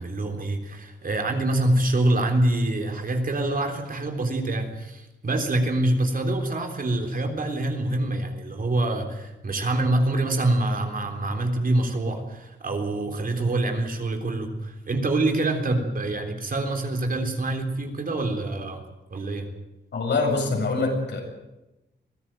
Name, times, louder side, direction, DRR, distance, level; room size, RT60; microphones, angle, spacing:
voice 1, 0.0-18.8 19.1-19.5, right 2 dB, 50° right, 4 dB, 3.7 m, -25 dB
voice 2, 19.9-21.2, left 3 dB, 75° left, 1 dB, 7.7 m, -24 dB
23.0 x 16.5 x 9.2 m, 1.0 s
wide cardioid pair, 135°, 18 cm